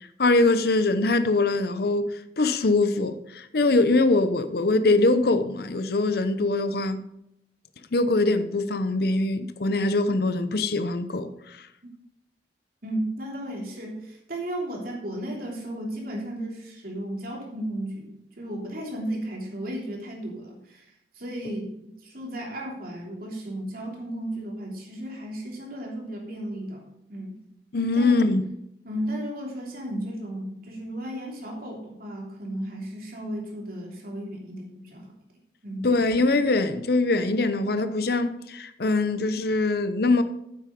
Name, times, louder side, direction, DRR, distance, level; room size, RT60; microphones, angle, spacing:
voice 1, 0.2-7.0 7.9-11.7 27.7-28.4 35.8-40.2, left 2 dB, 60° left, 0.7 m, -23 dB
voice 2, 12.8-26.8 27.1-27.3 27.9-28.3 28.8-35.1 35.6-35.9, right 1 dB, 55° right, 3.2 m, -34 dB
9.6 x 7.8 x 5.2 m
head